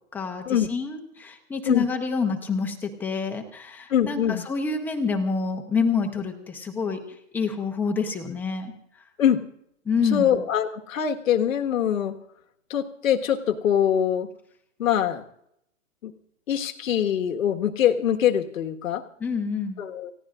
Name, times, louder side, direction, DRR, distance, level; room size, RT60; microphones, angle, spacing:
voice 1, 0.1-7.0 7.3-8.7 9.8-10.4 19.2-19.8, left 5 dB, 5° left, 5 dB, 0.8 m, -27 dB
voice 2, 3.9-4.4 9.2-9.4 10.1-12.1 12.7-14.3 14.8-15.2 16.0-16.1 16.5-19.0 19.8-20.1, left 9 dB, 80° left, 5 dB, 1.6 m, -23 dB
29.5 x 16.0 x 2.5 m, 0.73 s
hypercardioid pair, 170°, 40 cm